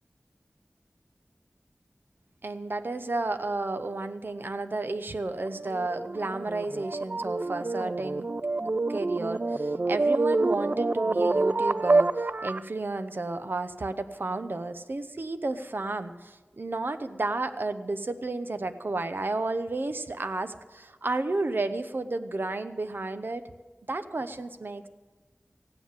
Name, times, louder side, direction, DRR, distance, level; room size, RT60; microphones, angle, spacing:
voice 1, 2.4-8.2 8.9-23.5 23.9-24.9, right 2 dB, 60° right, 9 dB, 0.8 m, -32 dB
sound 1, 5.4-12.7, right 3 dB, 45° right, 0.3 m, -27 dB
15.0 x 9.5 x 7.3 m, 1.2 s
wide cardioid pair, 65°, 4 cm